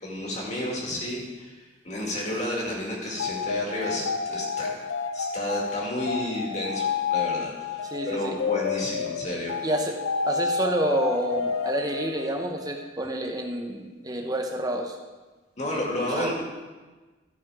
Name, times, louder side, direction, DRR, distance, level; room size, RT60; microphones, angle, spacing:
voice 1, 0.0-4.8 5.1-9.6 15.6-16.4, left 1 dB, 35° left, -2 dB, 2.1 m, -31 dB
sound 1, 3.2-12.9, left 5 dB, 85° left, 0.6 m, -30 dB
voice 2, 7.9-8.4 9.6-10.0 10.3-15.0 16.1-16.3, right 1 dB, 20° right, 3 dB, 0.9 m, -28 dB
13.5 x 5.8 x 4.9 m, 1.3 s
head